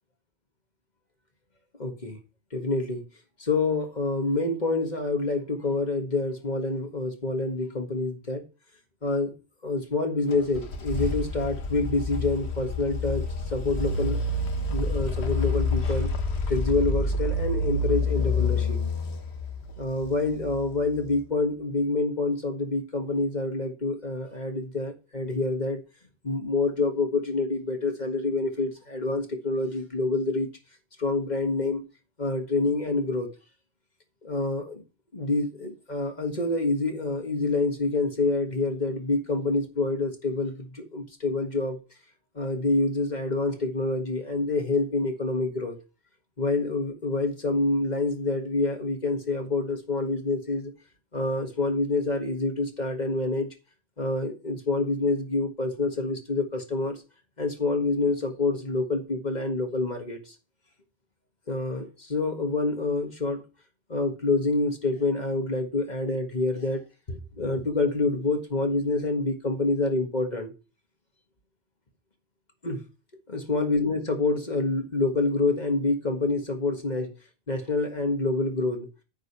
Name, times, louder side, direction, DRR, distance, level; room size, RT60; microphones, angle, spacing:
voice 1, 1.8-2.2 2.5-3.1 3.4-8.5 9.0-9.4 9.6-14.2 14.7-16.1 16.5-18.8 19.8-25.8 26.2-30.5 31.0-31.8 32.2-33.3 34.2-34.8 35.1-41.8 42.4-45.8 46.4-50.7 51.1-53.5 54.0-57.0 57.4-60.3 61.5-63.4 63.9-66.8 67.1-70.5 72.6-72.8 73.3-77.1 77.5-78.9, left 3 dB, 40° left, 1.8 m, -27 dB
sound 1, 10.3-21.1, left 2 dB, 80° left, 1.5 m, -28 dB
9.3 x 5.0 x 7.1 m
omnidirectional pair, 1.1 m